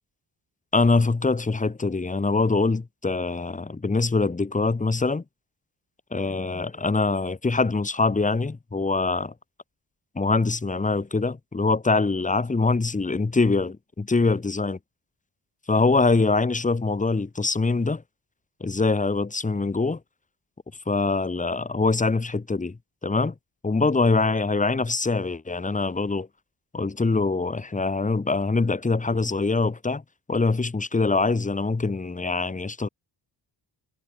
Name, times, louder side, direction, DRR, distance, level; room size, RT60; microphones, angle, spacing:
voice 1, 0.7-5.2 6.1-9.3 10.1-14.8 15.7-18.0 18.6-20.0 20.9-23.3 23.6-26.3 26.7-30.0 30.3-32.9, left 3 dB, 15° left, 1.5 m, -24 dB
cardioid pair, 115°, 43 cm